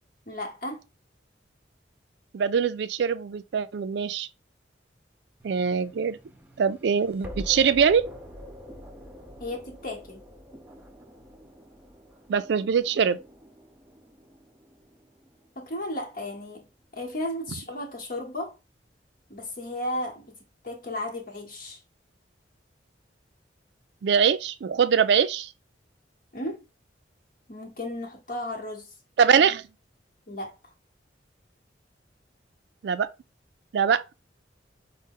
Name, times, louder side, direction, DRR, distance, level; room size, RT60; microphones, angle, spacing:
voice 1, 0.3-0.8 9.4-10.2 15.6-16.7 16.9-18.6 19.3-20.4 20.6-21.8 26.3-26.6 27.5-28.9 30.3-30.5, left 1 dB, 50° left, 1.0 m, -34 dB
voice 2, 2.3-4.3 5.4-6.2 6.6-8.1 12.3-13.2 24.0-25.5 29.2-29.6 32.8-33.1 33.7-34.0, right 6 dB, 65° right, 0.3 m, -23 dB
sound 1, 5.4-16.4, equal, 10° right, 0.5 m, -46 dB
5.2 x 2.1 x 3.6 m
head